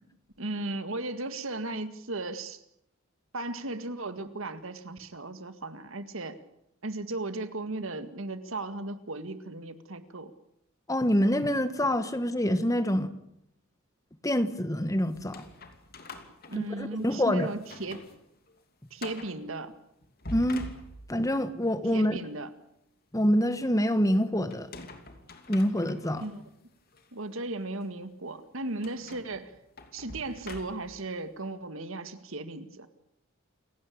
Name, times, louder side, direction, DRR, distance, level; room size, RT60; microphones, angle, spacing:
voice 1, 0.4-2.6 3.3-6.4 6.8-10.3 16.5-18.1 18.9-19.7 21.9-22.5 26.2-26.4 27.1-29.5 29.9-32.9, right 2 dB, 70° right, 10 dB, 2.0 m, -36 dB
voice 2, 10.9-13.1 14.2-15.4 16.6-17.5 20.3-20.7 21.1-22.2 23.1-24.7 25.5-26.2, equal, 15° left, 11 dB, 1.4 m, -26 dB
sound 1, 15.1-17.2 17.6-18.2 18.5-18.6 19.0-19.4 20.0-21.3 24.5-26.3 26.9-27.1 28.8-31.1, left 2 dB, 45° left, 2.8 m, -45 dB
28.5 x 17.0 x 8.7 m, 0.77 s
head